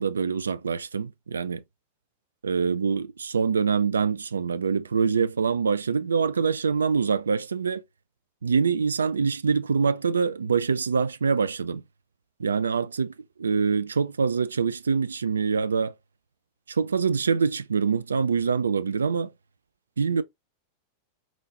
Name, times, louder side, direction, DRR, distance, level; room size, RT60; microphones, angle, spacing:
voice 1, 0.0-1.6 2.4-7.8 8.4-11.8 12.4-15.9 16.7-19.3 20.0-20.2, right 5 dB, 70° right, 0.3 m, -25 dB
4.0 x 3.1 x 3.7 m
figure-of-eight pair, 90°, 0 cm